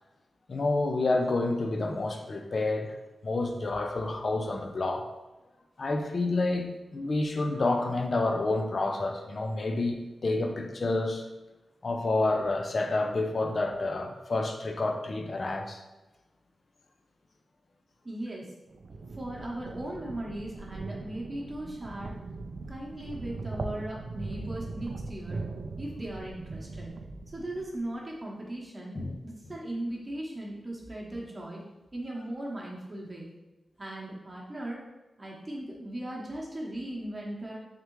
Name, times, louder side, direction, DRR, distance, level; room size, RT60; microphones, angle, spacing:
voice 1, 0.5-3.0 3.2-5.1 5.8-11.2 11.8-15.8 28.9-29.1, left 2 dB, 50° left, 4 dB, 0.5 m, -29 dB
voice 2, 18.0-18.5 19.1-22.1 22.7-25.4 25.8-26.9 27.3-29.0 29.2-31.6 31.9-33.3 33.8-34.8 35.2-37.6, right 1 dB, 30° right, -3 dB, 0.9 m, -38 dB
sound 1, 18.7-27.9, right 3 dB, 65° right, 0.3 m, -40 dB
3.6 x 3.3 x 3.0 m, 1.1 s
wide cardioid pair, 95°, 0 cm